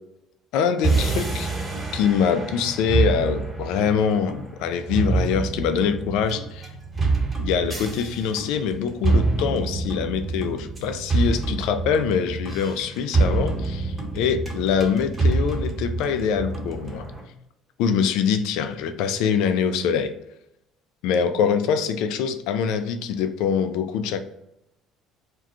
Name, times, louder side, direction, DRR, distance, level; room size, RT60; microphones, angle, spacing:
voice 1, 0.5-1.5 1.9-6.7 7.4-17.1 17.8-20.1 21.0-24.2, left 7 dB, 75° left, 0.3 m, -24 dB
sound 1, 0.8-17.2, right 3 dB, 20° right, 1.1 m, -26 dB
2.4 x 2.2 x 3.8 m
supercardioid pair, 75°, 0 cm